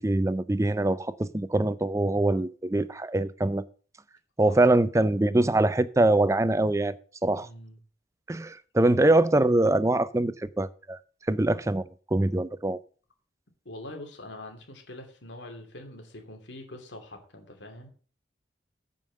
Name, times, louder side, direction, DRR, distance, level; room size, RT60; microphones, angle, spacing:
voice 1, 0.0-3.6 4.4-6.9 7.2-7.5 8.3-11.0 11.3-12.8, right 2 dB, 15° right, 0.4 m, -23 dB
voice 2, 7.3-7.8 13.6-17.9, left 1 dB, 85° left, 2.6 m, -44 dB
9.1 x 5.3 x 7.5 m
head